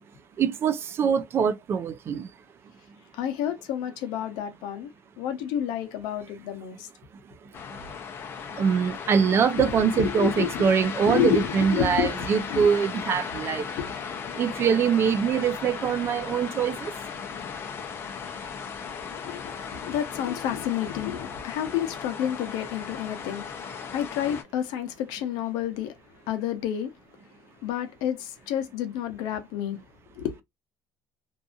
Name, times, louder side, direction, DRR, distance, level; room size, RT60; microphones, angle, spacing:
voice 1, 0.4-2.3 8.6-13.6 14.4-16.9, right 7 dB, 35° right, 0.3 m, -23 dB
voice 2, 3.1-4.9 5.2-6.9 9.6-9.7 9.9-10.7 11.0-12.7 13.8-13.9 19.1-23.4 23.9-25.9 26.3-26.9 27.6-29.8 30.1-30.4, left 10 dB, 75° left, 0.7 m, -30 dB
sound 1, 7.5-24.4, left 6 dB, 30° left, 0.6 m, -36 dB
2.7 x 2.4 x 2.4 m
cardioid pair, 150°, 7 cm